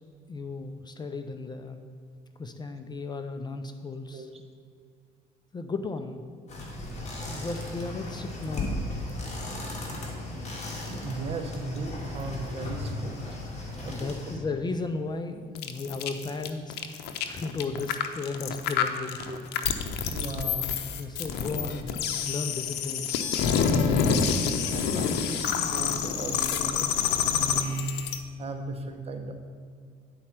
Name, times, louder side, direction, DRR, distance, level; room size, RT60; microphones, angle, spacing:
voice 1, 0.3-1.8 2.4-4.3 5.5-6.2 7.3-8.8 13.9-19.2 21.0-23.1 23.4-24.3, left 3 dB, 25° left, 7 dB, 0.5 m, -35 dB
sound 1, 6.5-14.4, left 2 dB, 40° left, 2.0 m, -36 dB
voice 2, 10.7-13.2 13.8-14.2 19.1-19.4 20.1-20.7 21.4-21.8 23.4-24.2 24.4-27.9 28.4-29.3, right 3 dB, 35° right, 5 dB, 0.9 m, -36 dB
sound 2, 15.5-28.2, left 7 dB, 80° left, 0.7 m, -28 dB
10.0 x 4.3 x 5.9 m, 2.2 s
cardioid pair, 110°, 17 cm